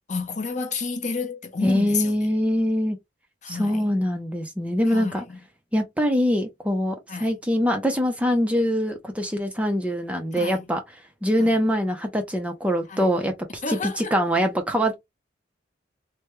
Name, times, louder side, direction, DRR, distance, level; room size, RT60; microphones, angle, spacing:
voice 1, 0.1-2.3 3.4-3.9 4.9-5.4 7.1-7.3 10.3-10.7 11.4-11.6 12.9-13.1 13.6-14.2, left 4 dB, 40° left, 0.6 m, -31 dB
voice 2, 1.6-3.0 3.5-5.2 5.7-10.8 11.2-15.0, equal, 5° right, 0.5 m, -23 dB
3.3 x 2.2 x 3.0 m
head